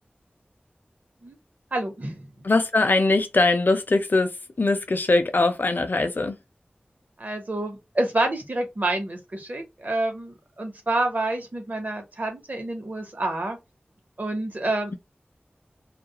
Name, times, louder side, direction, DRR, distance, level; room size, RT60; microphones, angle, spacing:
voice 1, 1.7-2.4 7.2-13.6 14.2-15.0, right 2 dB, 50° right, 0.9 m, -28 dB
voice 2, 2.4-6.4, left 2 dB, 60° left, 0.5 m, -21 dB
2.4 x 2.0 x 2.9 m
wide cardioid pair, 55°, 4 cm